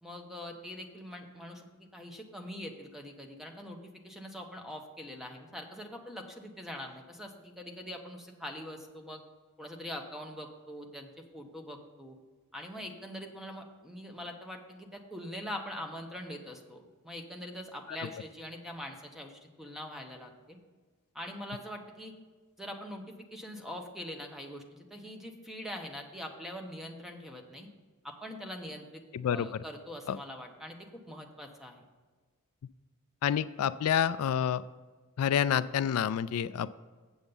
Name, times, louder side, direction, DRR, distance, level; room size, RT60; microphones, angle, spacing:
voice 1, 0.0-3.8 4.0-9.2 9.6-12.2 12.5-20.6 21.1-22.1 22.6-27.7 28.0-29.0 29.3-31.8, equal, ahead, 3 dB, 0.9 m, -43 dB
voice 2, 29.1-29.6 30.1-30.2 33.2-34.6 35.2-36.7, left 9 dB, 85° left, 15 dB, 0.3 m, -28 dB
7.9 x 7.2 x 5.4 m, 1.4 s
head